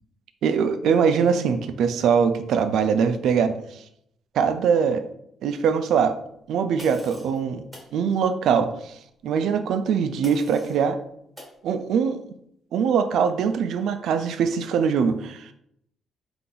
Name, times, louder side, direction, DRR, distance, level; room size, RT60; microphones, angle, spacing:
voice 1, 0.4-3.6 4.3-5.0 5.4-6.2 6.5-7.6 7.9-9.0 9.2-11.0 11.6-12.2 12.7-15.5, right 6 dB, 75° right, 10 dB, 0.4 m, -22 dB
sound 1, 6.8-7.4 7.7-7.9 10.2-10.8 11.4-11.6, equal, 15° right, 1.4 m, -44 dB
3.9 x 2.9 x 3.7 m, 0.74 s
cardioid pair, 90°, 0 cm